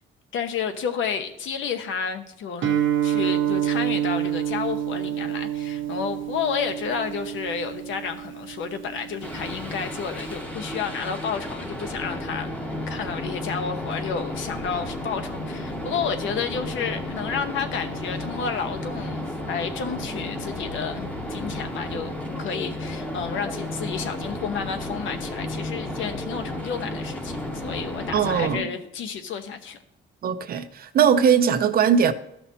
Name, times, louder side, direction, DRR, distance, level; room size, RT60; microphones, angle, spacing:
voice 1, 0.3-12.5 12.9-29.8, left 6 dB, 75° left, 1.0 m, -31 dB
Guitar, 2.6-10.4, right 11 dB, 75° right, 1.0 m, -28 dB
sound 1, 9.2-28.6, left 1 dB, 5° left, 1.0 m, -33 dB
voice 2, 28.1-28.7 30.2-32.1, right 7 dB, 50° right, 0.6 m, -20 dB
13.5 x 5.8 x 2.8 m
cardioid pair, 180°, 20 cm